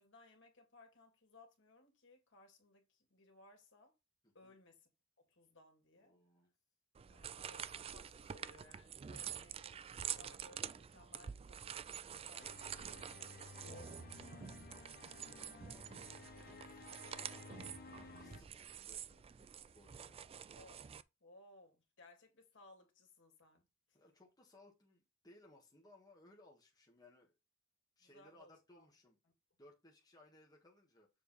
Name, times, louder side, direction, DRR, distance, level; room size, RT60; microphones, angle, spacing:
voice 1, 0.0-3.9 4.3-4.9 5.2-6.1 7.1-12.8 13.0-15.1 20.5-20.9 21.2-23.6 23.9-24.0 28.0-28.9, left 2 dB, 65° left, 2.2 m, -63 dB
voice 2, 6.0-6.5 12.2-12.5 15.1-20.2 23.9-27.3 28.0-29.2 29.6-31.1, left 1 dB, 20° left, 1.4 m, -65 dB
sound 1, 6.9-21.0, right 8 dB, 30° right, 0.3 m, -48 dB
sound 2, 12.4-18.4, left 3 dB, 45° left, 1.0 m, -55 dB
7.0 x 3.3 x 5.5 m
head